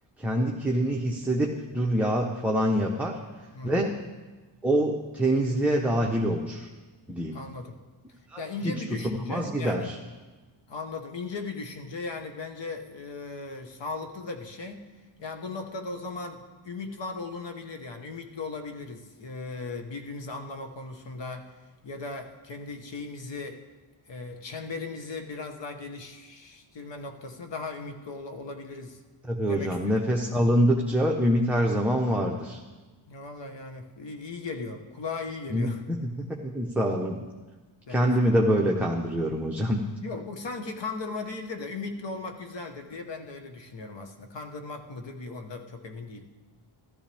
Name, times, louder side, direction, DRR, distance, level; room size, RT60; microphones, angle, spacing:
voice 1, 0.2-3.1 3.6-3.9 4.6-6.7 7.1-7.4 8.3-8.4 9.0-10.0 29.3-32.6 35.5-35.7 36.0-37.2 37.9-39.8, equal, 5° right, -1 dB, 0.9 m, -25 dB
voice 2, 3.5-3.8 7.3-7.7 8.4-9.9 10.7-14.8 15.2-21.5 21.8-23.6 24.1-29.0 29.5-30.4 33.1-35.8 37.9-38.3 40.0-46.3, left 3 dB, 60° left, 5 dB, 1.3 m, -37 dB
14.0 x 13.5 x 3.5 m, 1.2 s
wide cardioid pair, 100°, 49 cm